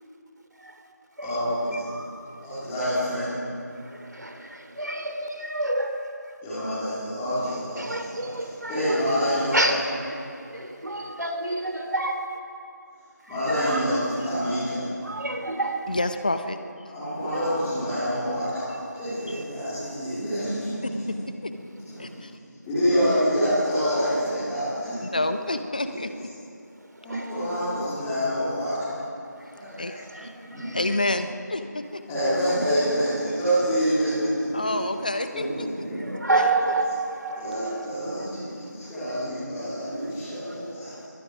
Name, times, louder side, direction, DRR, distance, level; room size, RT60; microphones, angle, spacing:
voice 1, 0.5-0.8 1.1-1.4 1.7-2.7 4.1-6.3 7.8-12.4 13.2-14.3 15.0-16.0 17.2-17.6 18.7-19.7 21.9-22.2 24.7-24.8 25.1-25.3 26.8-27.8 29.4-31.1 32.4-32.5 34.0-35.0 35.6-38.7 39.1-39.2 39.6-41.1, right 2 dB, 70° right, 5 dB, 3.3 m, -31 dB
voice 2, 1.2-1.8 2.4-3.3 6.4-8.3 8.7-9.6 13.3-13.9 14.2-14.8 16.9-18.7 18.9-21.3 21.9-22.0 22.7-25.1 25.9-26.0 27.0-28.9 29.5-29.9 30.2-30.7 32.1-34.8 35.3-35.5 35.8-36.0 37.4-41.0, equal, 5° left, -14 dB, 3.9 m, -27 dB
voice 3, 15.9-16.6 19.3-19.4 21.1-21.2 21.4-21.5 22.0-22.3 25.0-26.3 29.8-30.3 30.7-32.0 34.5-35.7, left 2 dB, 25° left, 9 dB, 0.8 m, -28 dB
26.5 x 22.0 x 5.0 m, 2.5 s
figure-of-eight pair, 175°, 10 cm